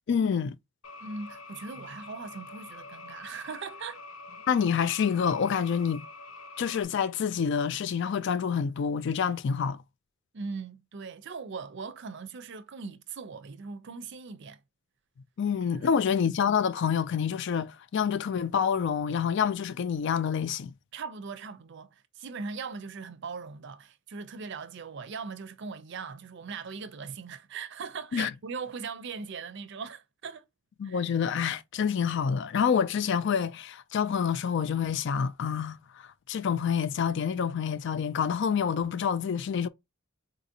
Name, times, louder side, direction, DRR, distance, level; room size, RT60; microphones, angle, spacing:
voice 1, 0.1-0.5 4.5-6.1 6.6-9.8 15.4-20.7 28.1-28.3 30.8-39.7, left 7 dB, 55° left, 0.3 m, -27 dB
sound 1, 0.8-6.8, left 3 dB, 80° left, 0.7 m, -46 dB
voice 2, 1.0-4.0 10.3-14.6 15.7-15.9 20.9-30.4 30.8-31.1, right 5 dB, 55° right, 0.5 m, -40 dB
3.9 x 2.6 x 2.7 m
head